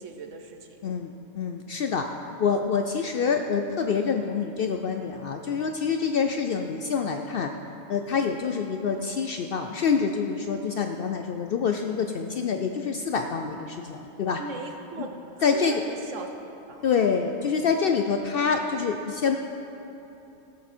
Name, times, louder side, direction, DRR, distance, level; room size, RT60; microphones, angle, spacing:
voice 1, 0.0-0.8 14.4-16.3 16.7-16.8, right 4 dB, 85° right, 4 dB, 1.3 m, -38 dB
voice 2, 0.8-2.1 2.4-7.5 7.9-14.4 15.4-15.8 16.8-19.4, left 6 dB, 60° left, 5 dB, 0.7 m, -26 dB
15.5 x 7.3 x 4.4 m, 3.0 s
omnidirectional pair, 1.2 m